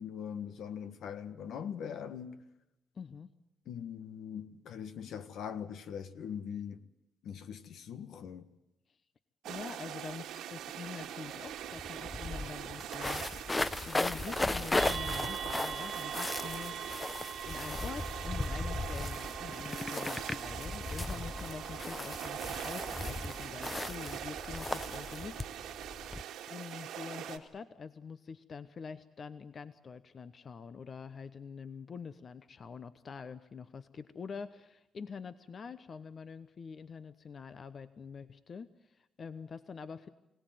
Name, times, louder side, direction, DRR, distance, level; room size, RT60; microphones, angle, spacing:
voice 1, 0.0-2.4 3.7-6.8 7.2-8.4, left 8 dB, 70° left, 1.5 m, -41 dB
voice 2, 2.9-3.3 8.9-9.0 9.4-13.2 13.9-16.9 17.4-25.4 26.5-40.1, left 5 dB, 45° left, 0.9 m, -45 dB
sound 1, 9.4-27.4, right 10 dB, 85° right, 2.1 m, -42 dB
sound 2, 11.5-11.6 11.8-26.2, left 2 dB, 20° left, 0.7 m, -37 dB
sound 3, 14.8-23.5, right 7 dB, 50° right, 1.3 m, -44 dB
25.0 x 17.5 x 9.3 m
cardioid pair, 90°, 0 cm